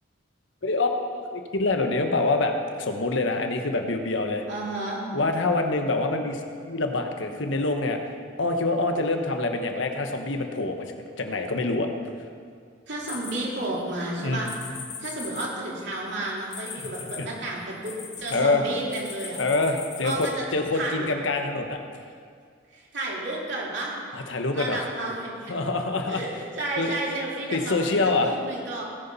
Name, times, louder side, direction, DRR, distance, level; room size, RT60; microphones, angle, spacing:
voice 1, 0.6-4.4 5.1-8.0 8.4-10.9 11.2-11.9 14.2-14.5 16.8-16.9 17.2-17.3 18.3-18.6 19.4-21.8 24.1-24.9 25.5-26.2 26.8-26.9 27.5-28.3, left 3 dB, 80° left, 5 dB, 1.2 m, -26 dB
voice 2, 4.5-5.0 12.9-14.5 15.0-19.4 20.0-20.4 20.7-21.1 22.7-23.9 24.5-25.5 26.1-28.8, right 2 dB, 65° right, -4 dB, 3.2 m, -32 dB
sound 1, 13.1-13.9 14.5-18.4 18.9-20.3, left 7 dB, 55° left, 2.2 m, -39 dB
18.0 x 7.0 x 5.5 m, 2.2 s
head